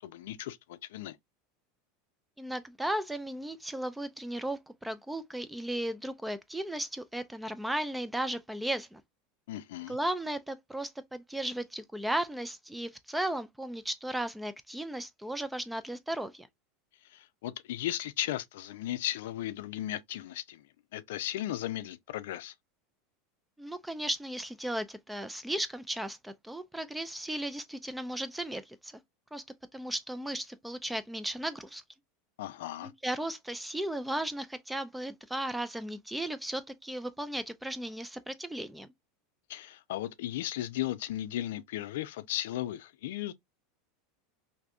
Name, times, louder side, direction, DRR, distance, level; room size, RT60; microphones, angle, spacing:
voice 1, 0.0-1.2 9.5-10.0 17.1-20.7 20.9-22.5 32.4-32.9 39.5-43.3, left 13 dB, 80° left, 0.4 m, -36 dB
voice 2, 2.4-9.0 9.9-16.5 23.6-28.9 29.3-29.4 29.7-31.8 32.8-38.9, right 1 dB, 5° right, 0.3 m, -35 dB
3.4 x 2.6 x 2.4 m
supercardioid pair, 145°, 0 cm